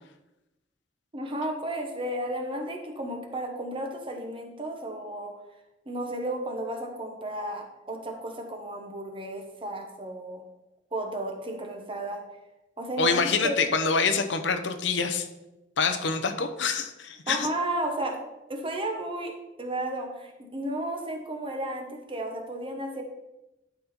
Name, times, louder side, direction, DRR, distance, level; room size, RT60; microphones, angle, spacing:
voice 1, 1.1-5.3 5.9-10.4 10.9-12.2 12.8-13.6 17.3-18.2 18.5-19.3 19.6-23.0, right 1 dB, 30° right, 2 dB, 1.2 m, -33 dB
voice 2, 13.0-15.3 15.8-17.5, left 4 dB, 75° left, 7 dB, 0.8 m, -26 dB
11.5 x 4.2 x 4.4 m, 0.98 s
head